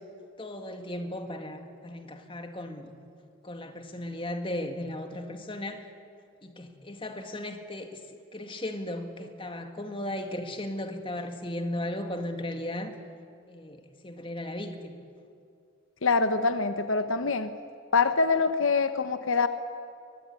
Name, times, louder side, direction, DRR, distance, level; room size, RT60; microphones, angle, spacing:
voice 1, 0.4-2.9 3.4-5.9 6.4-8.0 8.3-12.9 13.5-15.0, left 1 dB, 25° left, 5 dB, 2.0 m, -36 dB
voice 2, 16.0-17.6 17.9-19.5, left 4 dB, 75° left, 10 dB, 1.0 m, -25 dB
22.5 x 22.5 x 9.9 m, 2.3 s
head